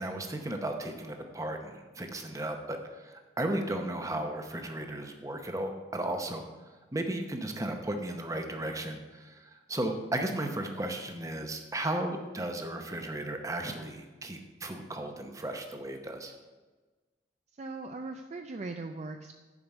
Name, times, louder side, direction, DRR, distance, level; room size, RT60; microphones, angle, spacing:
voice 1, 0.0-6.4 6.9-16.4, right 1 dB, 20° right, 5 dB, 0.8 m, -35 dB
voice 2, 17.5-19.4, right 3 dB, 40° right, 5 dB, 0.4 m, -39 dB
7.2 x 5.1 x 7.0 m, 1.3 s
head